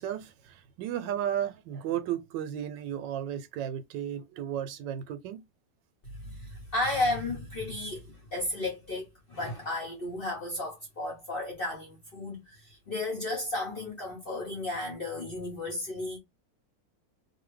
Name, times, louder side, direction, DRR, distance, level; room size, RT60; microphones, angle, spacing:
voice 1, 0.0-5.4, right 10 dB, 80° right, 1.2 m, -34 dB
voice 2, 6.0-16.2, left 2 dB, 45° left, 0.8 m, -34 dB
2.7 x 2.7 x 3.1 m
omnidirectional pair, 1.9 m